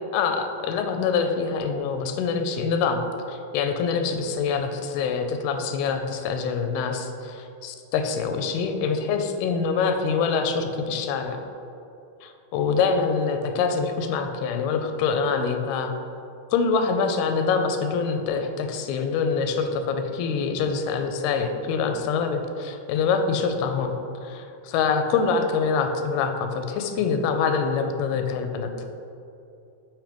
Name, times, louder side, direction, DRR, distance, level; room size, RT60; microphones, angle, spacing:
voice 1, 0.1-3.0 3.3-11.4 12.2-15.9 16.5-23.9 24.2-28.7, left 5 dB, 90° left, 6 dB, 2.5 m, -25 dB
7.1 x 3.0 x 5.0 m, 2.7 s
omnidirectional pair, 4.4 m